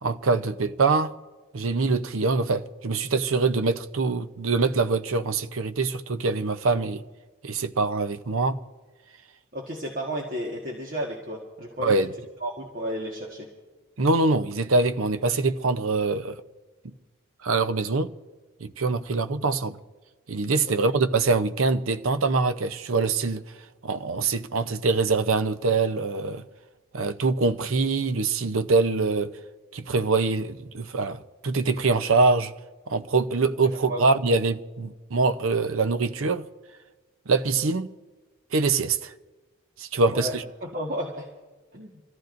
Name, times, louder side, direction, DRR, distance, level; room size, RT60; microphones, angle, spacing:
voice 1, 0.0-1.1 1.5-7.0 7.4-8.6 11.8-12.1 14.0-16.4 17.4-18.1 18.6-19.8 20.3-23.5 23.8-26.4 26.9-29.4 29.7-32.5 32.9-36.5 37.3-37.9 38.5-39.1 39.8-40.4, right 3 dB, 75° right, 0.7 m, -24 dB
voice 2, 9.5-12.0 12.4-13.5 20.6-20.9 33.6-34.0 40.1-41.3 41.7-41.9, equal, 40° right, 1.6 m, -33 dB
26.5 x 14.5 x 2.6 m
head